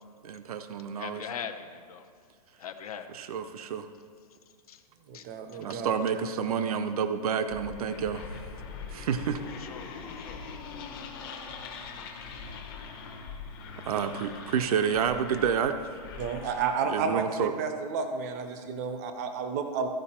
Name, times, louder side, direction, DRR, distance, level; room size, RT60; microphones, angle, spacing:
voice 1, 0.2-1.3 3.1-3.9 5.6-8.2 8.9-9.4 13.9-15.8 16.9-17.5, right 7 dB, 65° right, 8 dB, 0.6 m, -29 dB
voice 2, 1.0-2.0 2.6-3.1 4.7-4.8 5.1-5.2 9.6-9.9 10.2-10.4, left 7 dB, 65° left, 7 dB, 0.8 m, -40 dB
voice 3, 5.1-6.2 16.2-19.9, right 5 dB, 25° right, 7 dB, 0.6 m, -32 dB
sound 1, 7.5-16.9, left 5 dB, 35° left, 1.0 m, -42 dB
14.5 x 5.1 x 4.3 m, 2.2 s
hypercardioid pair, 175°, 21 cm